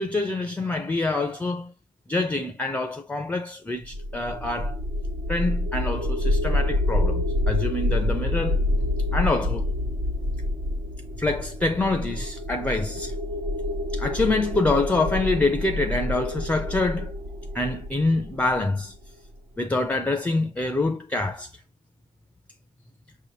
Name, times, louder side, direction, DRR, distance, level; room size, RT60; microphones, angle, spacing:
voice 1, 0.0-1.7 2.1-4.8 5.3-8.6 9.1-9.7 11.2-13.1 13.9-17.1 17.5-18.9 19.6-21.5, left 2 dB, 10° left, 0.4 m, -26 dB
sound 1, 3.8-18.9, left 1 dB, 85° right, 1.2 m, -27 dB
6.1 x 2.7 x 3.0 m
wide cardioid pair, 165°, 14 cm